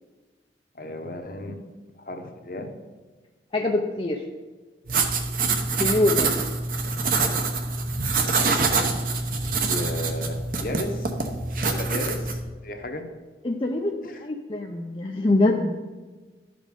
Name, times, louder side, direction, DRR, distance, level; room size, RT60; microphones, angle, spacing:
voice 1, 0.7-1.6 2.0-2.8 9.7-11.1 11.7-13.1 14.1-14.2, left 1 dB, 50° left, 5 dB, 1.0 m, -34 dB
voice 2, 3.5-4.2 5.8-6.4 11.6-11.7 13.4-15.7, left 2 dB, 30° left, 1 dB, 0.5 m, -24 dB
sound 1, 4.9-12.4, right 4 dB, 50° right, 1.0 m, -25 dB
12.5 x 5.1 x 5.2 m, 1.3 s
head